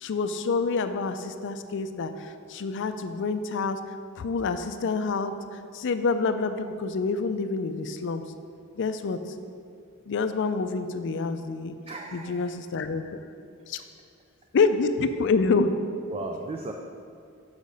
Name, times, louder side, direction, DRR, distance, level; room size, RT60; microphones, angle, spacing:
voice 1, 0.0-3.8 4.2-8.2 8.8-9.2 10.1-11.8 12.1-13.2 13.7-13.8 14.5-15.7, left 4 dB, 60° left, 9 dB, 0.4 m, -27 dB
voice 2, 11.9-12.5 16.1-16.7, right 2 dB, 25° right, 3 dB, 0.4 m, -36 dB
6.5 x 4.9 x 5.3 m, 2.4 s
head